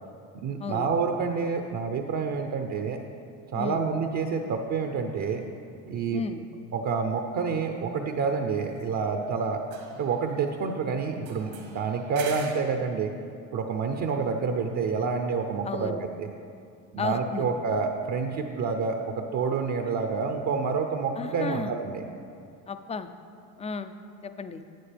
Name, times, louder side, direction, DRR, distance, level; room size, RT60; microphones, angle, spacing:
voice 1, 0.3-3.0 3.5-5.4 5.9-6.2 6.7-9.6 10.0-13.1 13.5-16.3 16.9-22.0, right 5 dB, 50° right, 4 dB, 0.7 m, -28 dB
voice 2, 3.5-3.9 6.1-6.4 15.6-16.0 17.0-17.4 21.2-21.7 22.7-23.1 23.6-23.9 24.2-24.6, left 5 dB, 20° left, 10 dB, 0.4 m, -33 dB
sound 1, 5.2-5.4 8.6-9.3 9.6-10.7 11.2-12.8, right 5 dB, 75° right, 1.7 m, -44 dB
12.0 x 8.3 x 3.4 m, 2.4 s
supercardioid pair, 100°, 37 cm